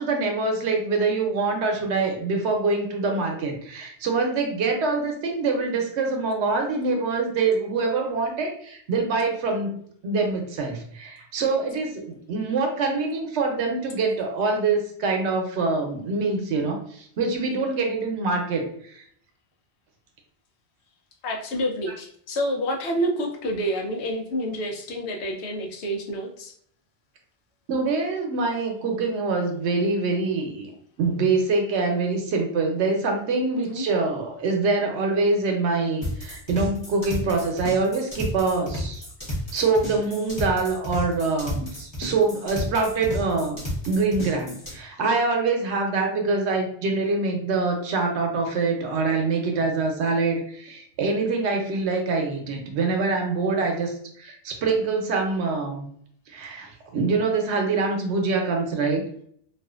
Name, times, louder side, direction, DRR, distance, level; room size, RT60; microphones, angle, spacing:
voice 1, 0.0-9.8 10.0-19.0 27.7-30.7 31.0-39.0 39.5-43.6 43.8-55.8 56.3-59.0, right 3 dB, 80° right, 3 dB, 0.9 m, -25 dB
voice 2, 21.2-26.5 33.6-33.8, equal, 80° left, 2 dB, 0.9 m, -28 dB
sound 1, 36.0-44.7, equal, 25° left, 1.0 m, -32 dB
2.4 x 2.4 x 2.3 m, 0.64 s
omnidirectional pair, 1.1 m